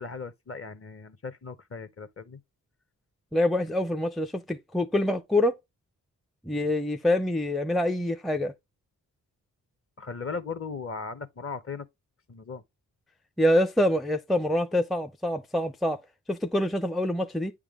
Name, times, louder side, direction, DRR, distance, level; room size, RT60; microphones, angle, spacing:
voice 1, 0.0-2.4 10.0-11.9 12.3-12.6, left 4 dB, 40° left, 0.9 m, -37 dB
voice 2, 3.3-5.6 6.5-8.5 13.4-16.0 16.3-17.5, left 1 dB, ahead, 0.5 m, -25 dB
8.8 x 3.6 x 3.6 m
cardioid pair, 50°, 36 cm